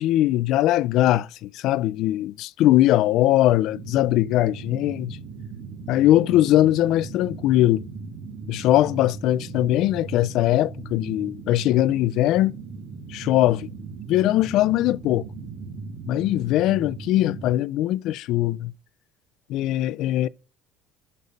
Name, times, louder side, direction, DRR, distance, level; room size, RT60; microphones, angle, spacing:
voice 1, 0.0-5.2 5.9-7.9 8.5-12.5 13.1-13.7 14.1-15.2 16.1-18.7 19.5-20.3, left 14 dB, 60° left, 0.3 m, -21 dB
sound 1, 3.7-17.5, right 4 dB, 50° right, 1.8 m, -38 dB
6.9 x 6.6 x 5.2 m
cardioid pair, 145°, 0 cm